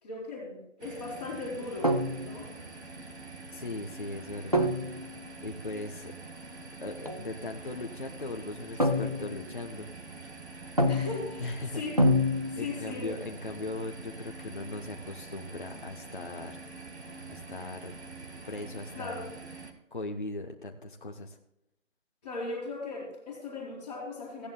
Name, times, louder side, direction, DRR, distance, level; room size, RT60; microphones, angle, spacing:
voice 1, 0.0-2.5 10.9-11.9 12.5-13.1 18.9-19.3 22.2-24.5, left 3 dB, 5° left, -9 dB, 2.5 m, -38 dB
sound 1, 0.8-19.7, right 3 dB, 55° right, 1.8 m, -45 dB
sound 2, 1.8-2.5 4.5-5.1 7.0-7.2 8.8-9.5 10.8-11.4 12.0-12.9, left 1 dB, 30° right, 0.7 m, -27 dB
voice 2, 3.5-4.7 5.4-6.1 6.8-9.9 11.4-11.8 12.6-16.7 17.3-17.9 18.4-19.3 19.9-21.4, left 2 dB, 40° left, 2 dB, 0.8 m, -39 dB
17.0 x 11.0 x 2.2 m, 0.83 s
figure-of-eight pair, 175°, 39 cm